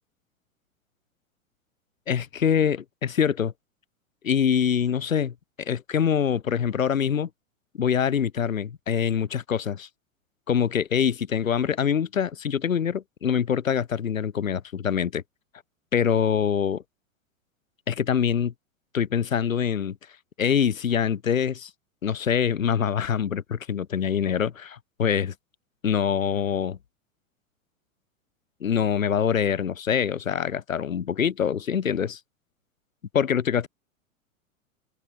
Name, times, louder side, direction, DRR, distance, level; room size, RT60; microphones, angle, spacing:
voice 1, 2.1-3.5 4.2-7.3 7.7-9.9 10.5-15.2 15.9-16.8 17.9-18.5 18.9-20.0 20.4-21.7 22.0-25.3 25.8-26.8 28.6-32.2 33.1-33.7, left 8 dB, 80° left, 1.0 m, -24 dB
open air
figure-of-eight pair, 95°, 40 cm